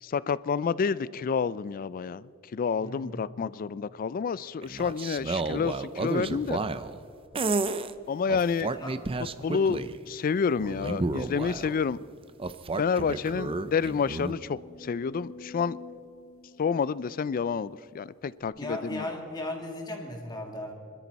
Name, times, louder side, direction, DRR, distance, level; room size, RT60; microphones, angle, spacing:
voice 1, 0.0-6.6 8.1-8.7 9.4-12.0 12.8-15.8 16.6-19.0, left 6 dB, 40° left, 0.3 m, -29 dB
voice 2, 2.8-3.2 8.7-9.0 18.5-20.7, left 1 dB, 20° left, 1.9 m, -36 dB
sound 1, 4.6-7.0 7.3-7.9 8.3-10.0 10.6-11.8 12.4-14.3, right 3 dB, 25° right, 0.5 m, -31 dB
sound 2, 12.4-12.5 12.9-13.0 13.5-17.8 18.4-18.5, left 4 dB, 75° left, 1.8 m, -49 dB
25.0 x 13.0 x 4.1 m
head